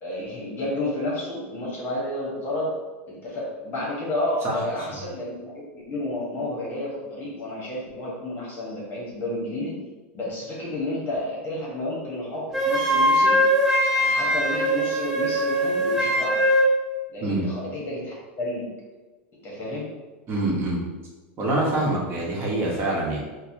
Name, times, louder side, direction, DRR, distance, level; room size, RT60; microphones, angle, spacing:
voice 1, 0.0-2.7 3.1-9.8 10.1-13.4 14.0-16.4 17.1-18.7 19.4-19.9, left 1 dB, 35° left, -5 dB, 1.0 m, -31 dB
Wind instrument woodwind instrument, 12.5-16.7, equal, 5° right, 0.7 m, -21 dB
voice 2, 20.3-20.8 21.4-23.2, right 2 dB, 35° right, -2 dB, 1.0 m, -25 dB
4.1 x 2.1 x 2.6 m, 1.3 s
supercardioid pair, 120°, 7 cm